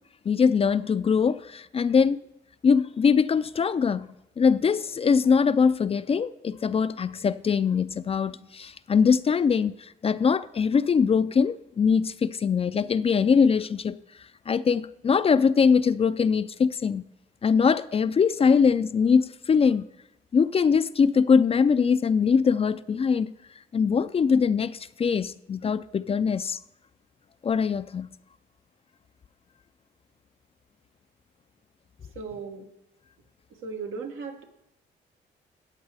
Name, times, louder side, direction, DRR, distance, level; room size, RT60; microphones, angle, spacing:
voice 1, 0.3-2.2 2.6-14.0 14.5-17.0 17.4-19.9 20.3-23.3 23.7-26.6 27.4-28.1, left 6 dB, 30° left, 0.4 m, -22 dB
voice 2, 32.1-32.6 33.6-34.4, right 5 dB, 85° right, 1.5 m, -36 dB
13.0 x 8.6 x 3.4 m
cardioid pair, 90°, 20 cm